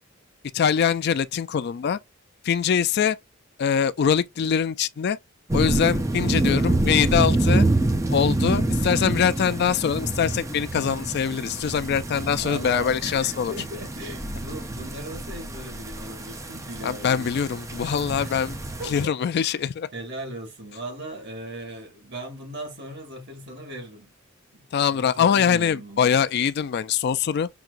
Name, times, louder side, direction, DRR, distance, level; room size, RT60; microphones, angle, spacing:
voice 1, 0.5-2.0 2.4-3.2 3.6-5.2 5.5-7.6 8.1-13.5 16.8-18.6 18.8-19.9 24.7-27.5, left 7 dB, 55° left, 0.3 m, -23 dB
sound 1, 5.5-19.0, right 2 dB, 15° right, 0.6 m, -27 dB
voice 2, 12.4-17.4 18.2-18.4 18.8-19.1 19.4-19.6 19.9-24.1 24.5-24.7 24.9-26.2, right 2 dB, 55° right, 1.8 m, -38 dB
5.9 x 2.8 x 2.5 m
head